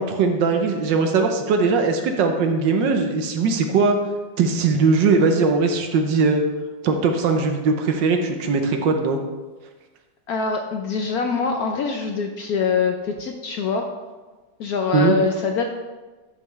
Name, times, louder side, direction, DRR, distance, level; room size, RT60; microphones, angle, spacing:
voice 1, 0.0-4.0 4.4-6.4 6.8-9.2 14.9-15.1, right 4 dB, 70° right, 5 dB, 1.5 m, -20 dB
voice 2, 10.3-13.9 14.6-15.7, left 5 dB, 70° left, 4 dB, 0.9 m, -24 dB
11.5 x 5.6 x 3.2 m, 1.3 s
omnidirectional pair, 2.1 m